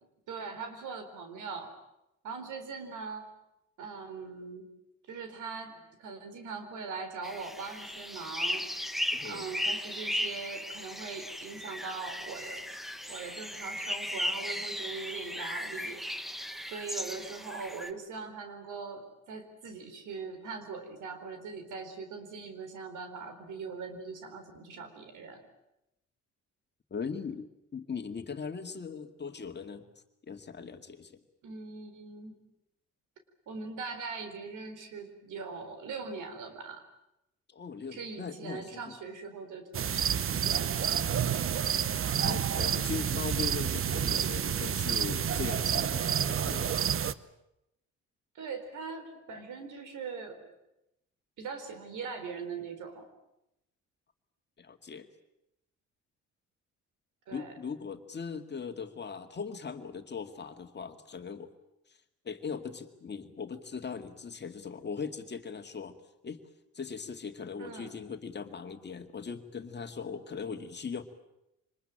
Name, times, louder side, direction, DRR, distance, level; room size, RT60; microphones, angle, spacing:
voice 1, 0.3-1.7 2.2-3.3 3.8-4.7 5.1-8.7 9.2-12.7 13.1-16.1 16.7-25.4 31.4-32.4 33.5-36.8 37.9-40.8 48.3-50.5 51.4-53.1 57.3-57.5 67.6-68.0, right 5 dB, 80° right, 8 dB, 4.3 m, -41 dB
sound 1, 7.2-17.9, left 1 dB, ahead, 1.5 m, -36 dB
voice 2, 9.1-9.5 26.9-29.9 30.3-31.1 37.5-38.8 42.2-46.7 54.6-55.1 57.3-61.5 62.2-65.9 66.2-66.4 66.7-71.0, left 5 dB, 35° left, 7 dB, 2.2 m, -39 dB
sound 2, 39.7-47.1, right 8 dB, 45° right, 0.9 m, -29 dB
25.0 x 20.5 x 9.0 m, 0.87 s
cardioid pair, 90°, 30 cm